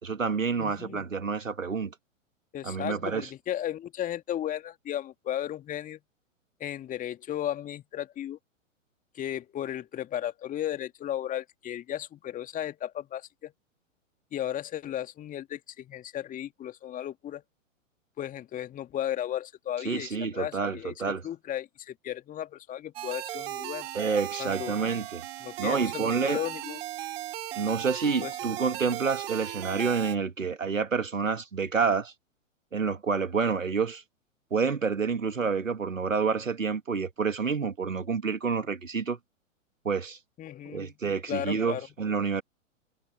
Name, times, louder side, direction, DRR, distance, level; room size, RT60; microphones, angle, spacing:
voice 1, 0.0-1.9 2.6-3.3 19.8-21.2 23.9-25.2 25.6-26.4 27.6-32.1 32.7-34.0 34.5-39.2 39.8-40.2 40.7-42.4, right 5 dB, 75° right, 2.3 m, -28 dB
voice 2, 0.6-1.0 2.5-6.0 6.6-8.4 9.1-13.5 14.3-17.4 18.2-23.9 24.4-24.7 25.4-26.8 28.2-28.4 40.4-40.9 41.3-41.9, left 11 dB, 20° left, 2.3 m, -35 dB
sound 1, 23.0-30.2, right 14 dB, 50° right, 2.3 m, -37 dB
figure-of-eight pair, 105°, 39 cm